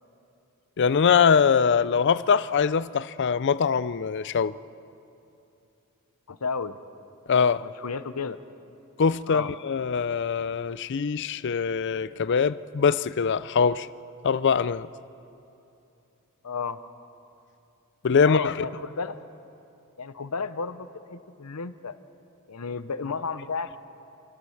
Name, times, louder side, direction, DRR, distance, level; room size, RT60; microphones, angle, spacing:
voice 1, 0.8-4.5 7.3-7.6 9.0-13.9 14.2-14.9 18.0-18.6, left 6 dB, 55° left, 0.5 m, -23 dB
voice 2, 6.3-6.8 7.6-8.4 9.3-9.5 16.4-16.8 18.2-19.3 20.0-22.0 22.5-23.8, left 5 dB, 90° left, 0.8 m, -32 dB
28.5 x 14.0 x 6.5 m
head